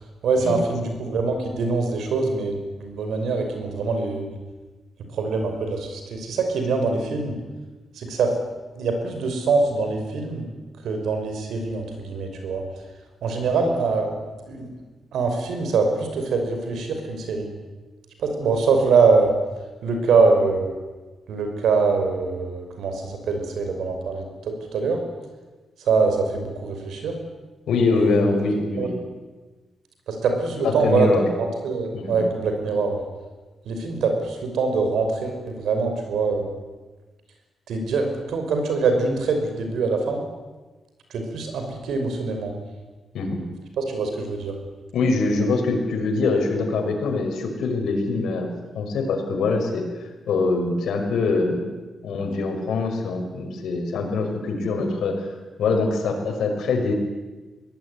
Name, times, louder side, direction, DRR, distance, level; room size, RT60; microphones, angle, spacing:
voice 1, 0.2-4.4 5.1-7.4 7.9-8.3 8.7-10.5 10.8-12.6 13.2-14.1 14.5-14.7 15.1-17.5 18.2-19.4 19.8-20.7 21.3-25.0 25.8-27.2 27.8-28.3 28.8-28.9 30.1-33.0 33.7-36.5 37.7-40.2 41.1-42.5 43.8-44.5, right 4 dB, 80° right, 5 dB, 5.6 m, -23 dB
voice 2, 27.7-28.9 30.6-31.2 31.9-32.3 43.1-43.4 44.9-48.5 48.7-49.8 50.3-51.7 52.0-55.3 55.6-56.9, left 3 dB, 85° left, 4 dB, 5.6 m, -23 dB
23.5 x 17.5 x 9.9 m, 1.2 s
wide cardioid pair, 160°, 0 cm